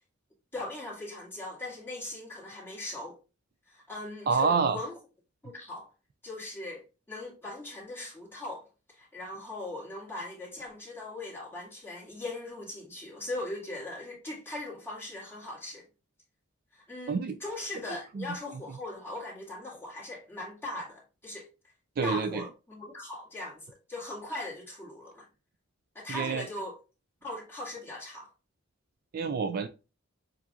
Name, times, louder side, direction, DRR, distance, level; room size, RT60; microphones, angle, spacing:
voice 1, 0.5-3.2 3.7-4.9 5.4-5.9 6.2-8.7 9.0-15.9 16.7-21.5 22.0-25.3 26.0-26.8 27.2-28.3, left 2 dB, 10° left, 2.0 m, -39 dB
voice 2, 4.3-4.8 17.1-17.3 17.9-18.4 22.0-22.5 26.1-26.5 29.1-29.7, right 5 dB, 45° right, 0.3 m, -28 dB
7.2 x 2.6 x 2.4 m
head